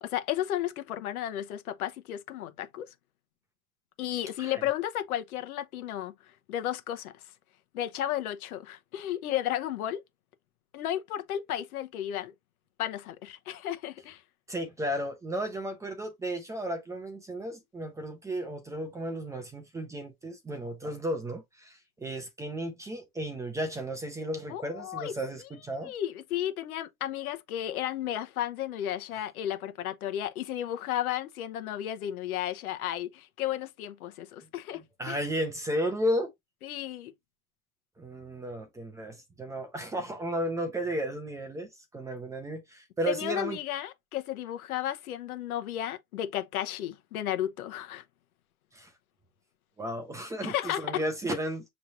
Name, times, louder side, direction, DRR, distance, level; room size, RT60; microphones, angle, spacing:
voice 1, 0.0-2.9 4.0-6.1 6.5-7.1 7.7-10.0 10.7-12.3 12.8-14.2 24.5-25.1 25.8-35.2 36.6-37.1 43.1-48.0 50.4-51.0, left 12 dB, 85° left, 0.9 m, -33 dB
voice 2, 14.5-25.9 35.0-36.3 38.0-43.6 48.7-48.9 49.8-51.6, equal, 10° right, 0.5 m, -34 dB
5.9 x 3.2 x 2.6 m
supercardioid pair, 145°, 42 cm